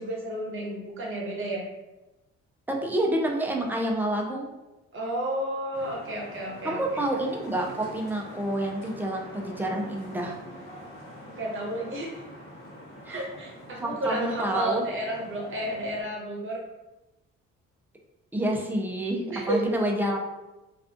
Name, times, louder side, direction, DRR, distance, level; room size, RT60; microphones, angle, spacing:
voice 1, 0.0-1.6 4.9-7.0 11.4-12.1 13.1-16.6 19.3-19.6, right 1 dB, 45° right, -3 dB, 0.9 m, -32 dB
voice 2, 2.7-4.5 6.6-10.4 13.0-13.2 13.8-14.8 18.3-20.2, right 1 dB, 5° right, 0 dB, 0.4 m, -28 dB
sound 1, 5.7-16.0, equal, 45° left, 1.0 m, -45 dB
2.5 x 2.3 x 2.5 m, 1.0 s
cardioid pair, 90°, 30 cm